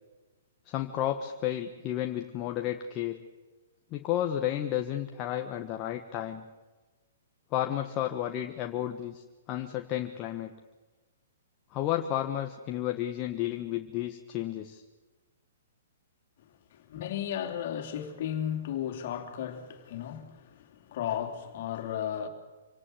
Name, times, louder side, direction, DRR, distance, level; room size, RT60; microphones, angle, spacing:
voice 1, 0.7-3.2 3.9-6.4 7.5-10.5 11.7-14.8, left 12 dB, 35° left, 1.4 m, -32 dB
voice 2, 16.7-22.3, left 10 dB, 55° left, 3.2 m, -34 dB
26.5 x 18.0 x 7.7 m
hypercardioid pair, 125°, 0 cm